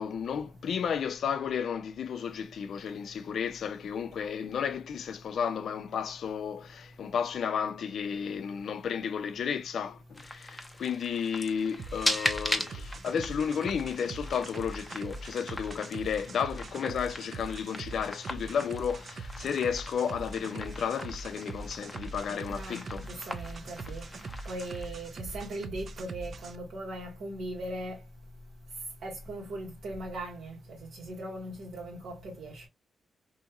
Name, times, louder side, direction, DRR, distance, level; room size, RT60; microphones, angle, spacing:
voice 1, 0.0-23.3 23.9-24.0, left 7 dB, 75° left, 0.3 m, -33 dB
sound 1, 10.1-24.8, left 1 dB, 10° left, 0.6 m, -39 dB
sound 2, 11.8-26.5, right 3 dB, 60° right, 0.4 m, -42 dB
voice 2, 22.5-24.0 24.4-28.0 29.0-32.7, right 1 dB, 85° right, 1.4 m, -39 dB
2.9 x 2.7 x 2.3 m
cardioid pair, 95°, 0 cm